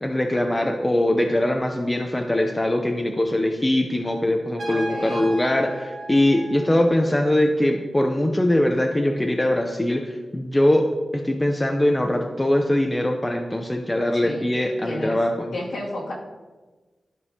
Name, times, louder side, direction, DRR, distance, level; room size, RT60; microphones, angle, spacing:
voice 1, 0.0-10.9 11.1-15.5, left 1 dB, 15° left, 3 dB, 0.5 m, -22 dB
Trumpet, 4.6-7.2, right 2 dB, 70° right, 2.4 m, -35 dB
voice 2, 4.7-5.3 14.2-14.5 14.8-15.2 15.5-16.1, left 1 dB, 55° left, -4 dB, 2.1 m, -32 dB
13.5 x 5.1 x 2.8 m, 1.3 s
wide cardioid pair, 130°, 0 cm